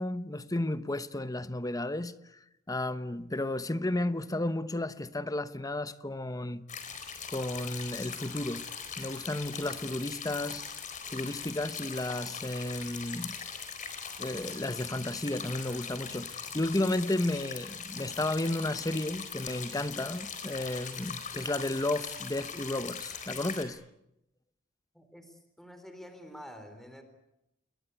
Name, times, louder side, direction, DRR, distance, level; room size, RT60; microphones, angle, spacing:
voice 1, 0.0-2.1 2.7-6.7 7.3-8.7 9.0-10.6 11.1-13.4 14.2-23.8, left 1 dB, 20° left, 1.0 m, -33 dB
sound 1, 6.7-23.6, left 6 dB, 40° left, 4.2 m, -41 dB
voice 2, 24.9-27.0, equal, ahead, 3.8 m, -48 dB
29.0 x 21.5 x 8.3 m
head